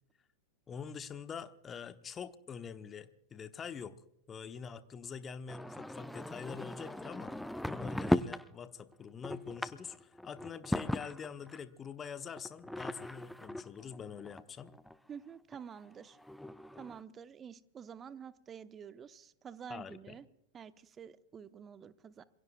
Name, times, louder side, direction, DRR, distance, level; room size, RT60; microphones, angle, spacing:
voice 1, 0.7-4.0 4.3-7.3 7.6-14.7 19.7-20.2, left 6 dB, 20° left, 11 dB, 1.1 m, -45 dB
sound 1, 5.5-8.5 8.9-11.6 12.4-14.9 15.5-15.6 15.8-15.9 16.1-17.0, left 1 dB, 5° left, 0.6 m, -38 dB
voice 2, 15.1-16.2 16.8-20.2 20.5-22.2, right 7 dB, 25° right, 14 dB, 0.9 m, -49 dB
27.5 x 22.5 x 2.3 m, 0.75 s
figure-of-eight pair, 90°, 0 cm